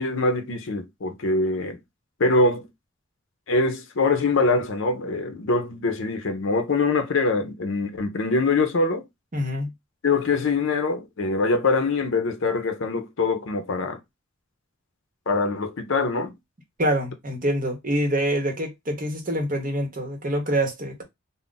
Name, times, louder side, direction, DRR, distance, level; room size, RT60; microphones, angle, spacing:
voice 1, 0.0-1.8 2.2-2.7 3.5-9.0 10.0-14.0 15.3-16.3, left 3 dB, 65° left, 0.6 m, -23 dB
voice 2, 9.3-9.7 16.8-21.0, right 1 dB, 40° right, 0.9 m, -25 dB
2.4 x 2.0 x 3.8 m
head